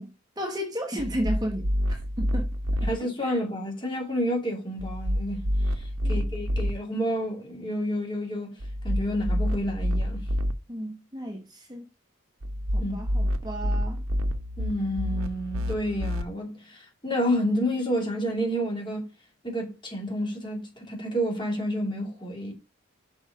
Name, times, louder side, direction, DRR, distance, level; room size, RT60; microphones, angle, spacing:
voice 1, 0.0-2.5 2.8-2.9 3.2-3.4 6.0-6.3 10.7-11.9 12.7-14.0, equal, 20° right, 1.1 m, -34 dB
sound 1, 1.0-2.9 4.8-6.7 8.6-10.5 12.4-16.2, equal, 90° right, 0.8 m, -28 dB
voice 2, 2.8-8.5 8.8-10.3 12.8-13.0 14.6-19.1 19.4-22.5, equal, 20° left, 2.6 m, -30 dB
6.0 x 5.4 x 5.3 m
head